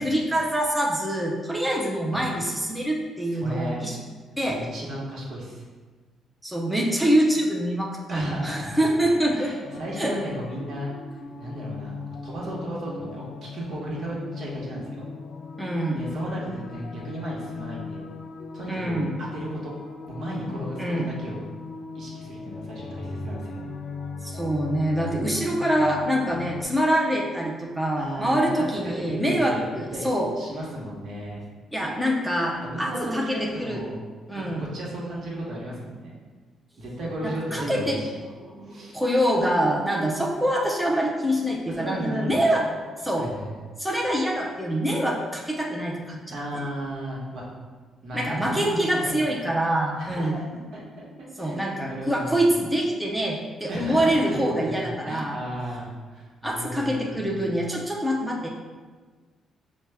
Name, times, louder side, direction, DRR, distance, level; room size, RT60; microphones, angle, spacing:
voice 1, 0.0-4.0 4.4-4.6 6.4-9.5 10.0-10.1 15.6-16.0 18.7-19.2 20.8-21.1 24.2-30.3 31.7-33.8 34.3-34.6 37.2-38.0 38.4-42.6 43.0-43.3 43.8-46.4 48.1-50.4 51.4-55.4 56.4-58.5, right 1 dB, ahead, -2 dB, 0.5 m, -25 dB
voice 2, 3.3-3.8 4.4-5.6 8.1-10.9 11.3-15.0 15.9-18.1 18.5-19.7 20.1-21.4 21.9-23.7 28.0-29.6 29.9-31.4 32.6-34.0 34.3-36.2 36.8-38.1 38.7-38.9 41.7-42.7 43.2-43.6 46.3-47.5 48.0-49.3 50.0-50.4 50.7-51.6 51.8-52.4 53.7-57.5, right 1 dB, 65° right, -4 dB, 1.1 m, -34 dB
sound 1, 9.6-26.6, left 4 dB, 65° left, 0.3 m, -38 dB
5.1 x 2.1 x 3.4 m, 1.4 s
cardioid pair, 90°, 0 cm